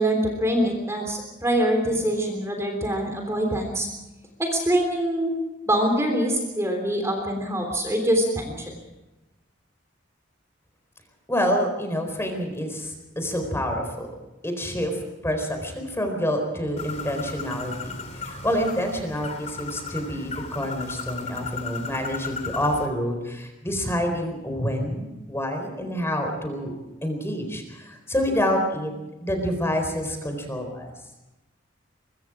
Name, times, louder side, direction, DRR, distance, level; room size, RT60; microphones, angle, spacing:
voice 1, 0.0-3.9 4.4-5.4 5.7-8.6, right 1 dB, 15° right, 3 dB, 3.4 m, -24 dB
voice 2, 11.3-14.1 14.4-17.9 18.2-26.7 27.0-28.9 29.2-30.9, equal, 15° left, 4 dB, 4.2 m, -27 dB
Bird, 16.8-22.9, left 5 dB, 35° left, 2.9 m, -36 dB
23.5 x 23.5 x 4.9 m, 1.0 s
head